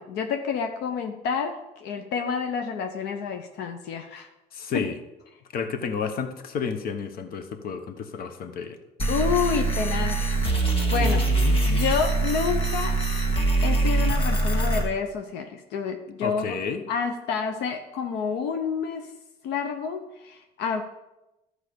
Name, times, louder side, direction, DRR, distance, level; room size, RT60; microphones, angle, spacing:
voice 1, 0.0-4.3 4.7-4.9 9.1-10.3 10.9-11.2 11.7-13.0 13.6-16.6 16.9-19.1 19.4-20.8, left 6 dB, 85° left, 5 dB, 0.8 m, -29 dB
voice 2, 4.5-5.0 5.5-8.8 11.0-11.6 16.2-16.8, left 6 dB, 60° left, 9 dB, 1.1 m, -31 dB
sound 1, 9.0-14.8, right 2 dB, 35° left, 1.7 m, -23 dB
12.0 x 4.9 x 6.8 m, 0.97 s
cardioid pair, 110°, 17 cm